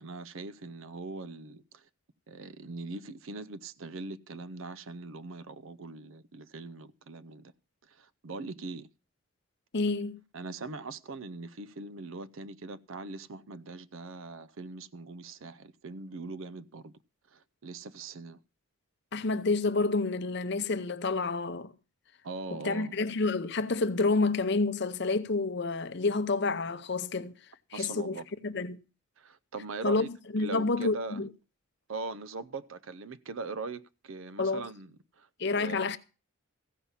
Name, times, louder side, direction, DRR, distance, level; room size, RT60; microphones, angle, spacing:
voice 1, 0.0-1.9 2.3-7.5 7.8-8.9 10.3-16.9 17.3-18.4 22.2-23.0 27.7-28.2 29.2-30.1 30.4-31.2 31.9-35.8, right 3 dB, 70° right, 0.6 m, -41 dB
voice 2, 9.7-10.2 19.1-21.7 22.5-27.4 27.7-28.8 29.8-30.1 30.3-31.3 34.4-34.6 35.4-36.0, left 3 dB, 50° left, 0.7 m, -29 dB
15.0 x 5.6 x 7.1 m
head